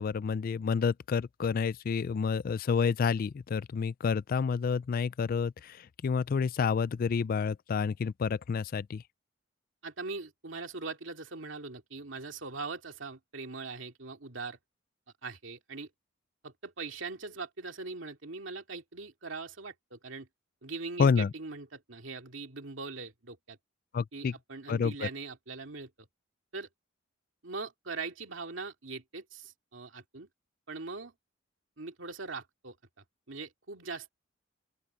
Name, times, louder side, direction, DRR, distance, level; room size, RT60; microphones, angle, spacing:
voice 1, 0.0-9.0 21.0-21.3 23.9-24.3 24.7-24.9, left 5 dB, 45° left, 0.3 m, -29 dB
voice 2, 9.8-14.6 15.2-15.9 16.4-20.3 20.6-23.6 24.1-26.1 26.5-26.7 27.4-30.3 30.7-31.1 31.8-34.1, right 4 dB, 70° right, 2.5 m, -41 dB
open air
head